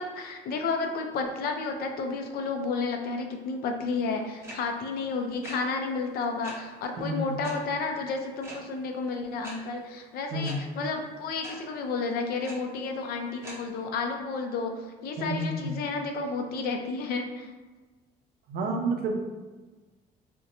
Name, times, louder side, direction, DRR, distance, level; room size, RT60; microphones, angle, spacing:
voice 1, 0.0-17.5, left 4 dB, 65° left, 4 dB, 0.4 m, -31 dB
sound 1, 4.4-4.5 5.4-5.5 6.4-6.5 7.4-7.5 8.4-8.5 9.4-9.5 10.4-10.5 11.4-11.5 12.4-12.5 13.4-13.5, right 1 dB, 15° right, 0.7 m, -41 dB
voice 2, 7.0-7.3 10.3-10.6 15.2-15.7 18.5-19.2, right 1 dB, 65° right, 3 dB, 0.4 m, -30 dB
2.7 x 2.1 x 2.5 m, 1.3 s
cardioid pair, 110°, 17 cm